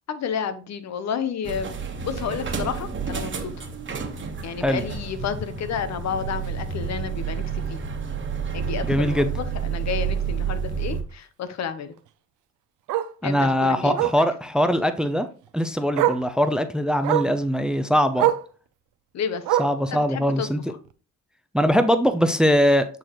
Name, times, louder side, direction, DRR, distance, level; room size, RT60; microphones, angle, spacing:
voice 1, 0.1-1.7 2.0-3.7 4.4-7.8 8.5-11.9 13.2-14.0 19.1-19.6 19.9-20.8, left 7 dB, 60° left, 0.9 m, -31 dB
sound 1, 1.4-11.0, right 6 dB, 40° right, 1.3 m, -30 dB
Bark, 6.4-6.6 7.0-7.1 7.5-7.6 7.9-8.0 9.4-9.5 12.0-12.1 12.9-13.2 13.9-14.2 15.4-15.5 15.9-16.3 17.0-17.4 18.1-18.5 19.4-19.9 20.9-21.0, right 13 dB, 85° right, 0.6 m, -24 dB
voice 2, 8.8-9.3 13.2-15.3 15.5-18.3 19.6-20.6 21.5-22.9, equal, 5° right, 0.6 m, -21 dB
8.9 x 4.1 x 3.0 m
cardioid pair, 90°, 30 cm